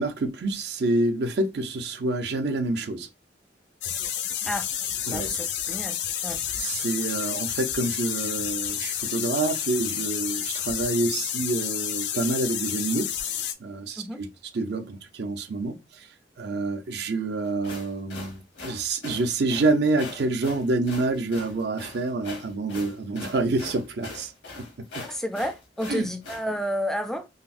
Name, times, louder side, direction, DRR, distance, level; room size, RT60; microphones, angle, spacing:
voice 1, 0.0-3.1 5.1-5.3 6.6-14.3 14.5-16.1 16.4-24.3 24.6-24.7 25.9-26.1, right 2 dB, 65° right, 0.5 m, -27 dB
sound 1, 3.8-13.5, left 9 dB, 70° left, 0.4 m, -30 dB
voice 2, 5.1-6.0 6.2-6.4 14.0-14.2 25.0-27.3, equal, 5° left, 0.3 m, -31 dB
sound 2, 17.5-26.5, left 3 dB, 85° left, 0.9 m, -41 dB
3.7 x 2.0 x 2.5 m
head